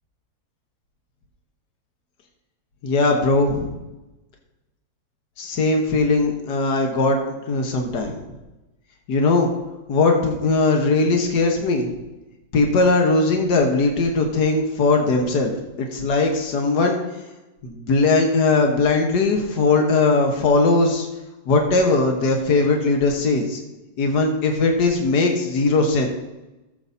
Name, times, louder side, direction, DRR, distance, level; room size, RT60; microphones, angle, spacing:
voice 1, 2.8-3.8 5.4-7.2 7.5-8.2 9.1-9.5 9.9-11.9 12.5-17.0 17.6-21.1 21.5-23.6 24.0-26.1, left 3 dB, 75° left, 2 dB, 1.8 m, -19 dB
17.5 x 7.5 x 2.7 m, 1.0 s
omnidirectional pair, 1.8 m